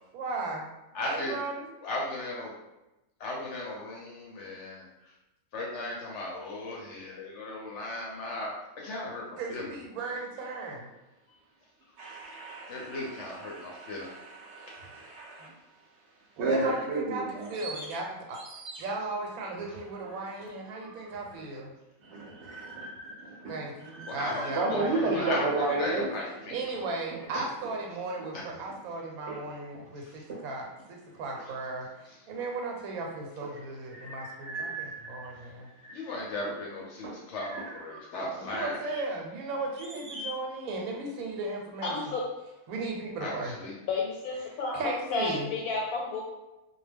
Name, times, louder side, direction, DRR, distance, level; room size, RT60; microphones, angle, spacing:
voice 1, 0.1-0.7 1.0-1.7 9.4-10.9 16.4-18.4 18.8-21.7 23.5-25.5 26.5-35.7 38.4-42.2 42.7-43.5 44.5-45.5, right 3 dB, 90° right, 0 dB, 1.1 m, -36 dB
voice 2, 0.9-1.3 1.8-2.5 3.2-4.8 5.5-8.5 8.8-9.6 12.7-14.1 24.1-24.4 24.7-26.5 35.9-38.7 43.2-43.3 43.6-43.7, left 2 dB, 65° left, -2 dB, 0.8 m, -36 dB
voice 3, 12.0-15.5 16.4-17.8 18.4-18.8 22.0-23.6 23.9-26.5 29.3-29.4 30.3-30.4 34.0-35.3 35.9-36.0 37.0-38.0 40.1-40.3, right 2 dB, 65° right, -2 dB, 0.7 m, -34 dB
voice 4, 41.8-42.2 43.9-46.2, left 3 dB, 90° left, -2 dB, 1.1 m, -31 dB
2.2 x 2.1 x 3.3 m, 1.0 s
omnidirectional pair, 1.5 m